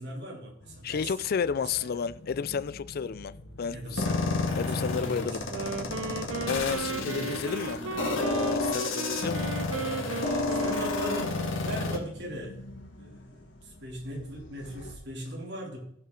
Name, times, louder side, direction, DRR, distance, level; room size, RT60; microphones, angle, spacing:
voice 1, 0.0-1.1 1.8-1.9 3.7-5.4 6.9-7.3 10.5-12.6 13.0-15.8, equal, 60° right, 2.7 m, -39 dB
sound 1, 0.6-15.0, left 1 dB, 65° left, 2.0 m, -45 dB
voice 2, 0.8-4.1 4.5-5.4 6.4-9.5, left 6 dB, 50° left, 0.4 m, -32 dB
sound 2, 4.0-12.0, left 3 dB, 80° left, 1.8 m, -31 dB
Wind instrument woodwind instrument, 5.4-11.9, right 4 dB, 85° right, 0.7 m, -36 dB
15.0 x 5.6 x 3.8 m
head